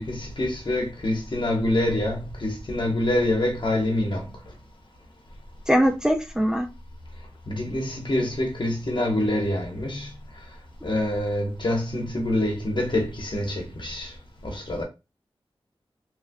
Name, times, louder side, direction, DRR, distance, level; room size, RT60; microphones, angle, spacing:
voice 1, 0.0-4.3 7.5-10.1 10.8-14.1 14.4-14.8, left 1 dB, 55° left, 1.1 m, -26 dB
voice 2, 5.7-6.7, equal, 5° right, 0.5 m, -21 dB
3.2 x 3.2 x 2.3 m
wide cardioid pair, 75°, 10 cm